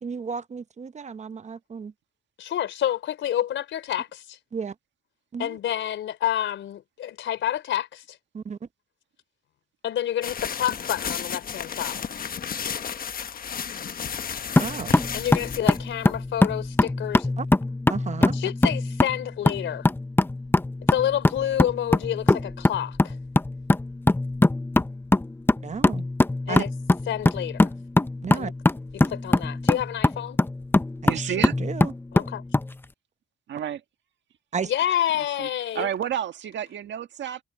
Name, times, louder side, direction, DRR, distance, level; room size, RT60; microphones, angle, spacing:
voice 1, 0.0-1.9 4.5-4.7 5.3-5.6 8.3-8.7 14.6-15.0 17.4-17.5 17.9-18.4 25.6-26.1 26.5-26.7 28.2-28.5 31.0-31.9 34.5-34.7, right 6 dB, 35° right, 0.9 m, -33 dB
voice 2, 2.4-4.4 5.4-8.2 9.8-12.1 15.1-17.3 18.3-19.9 20.9-23.2 26.5-26.7 27.1-27.7 28.3-28.5 28.9-30.4 32.1-32.4 34.6-35.9, left 11 dB, 75° left, 4.0 m, -28 dB
sound 1, 10.2-16.6, left 7 dB, 45° left, 1.2 m, -33 dB
sound 2, 14.6-32.7, left 2 dB, 10° left, 0.8 m, -23 dB
voice 3, 31.0-31.5 33.5-33.8 35.1-35.5 35.7-37.4, right 10 dB, 65° right, 1.7 m, -30 dB
cardioid pair, 90°, 20 cm